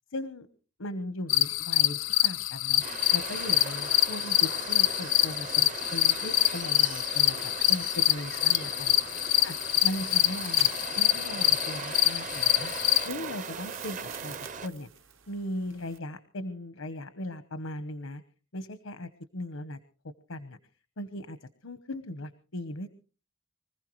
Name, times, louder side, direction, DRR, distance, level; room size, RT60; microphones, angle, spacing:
voice 1, 0.1-0.5 0.8-2.8 3.1-9.6 9.8-12.7 13.0-14.4 14.6-14.9 15.3-18.2 18.5-19.8 20.3-20.6 21.0-21.4 21.6-22.9, left 1 dB, 90° left, 11 dB, 1.0 m, -38 dB
sound 1, 1.3-13.1, left 16 dB, 75° left, 0.7 m, -25 dB
Waves surf, 2.8-14.7, right 5 dB, 40° right, 0.7 m, -39 dB
sound 2, 6.8-16.0, right 10 dB, 75° right, 1.1 m, -49 dB
24.5 x 15.5 x 3.1 m, 0.37 s
head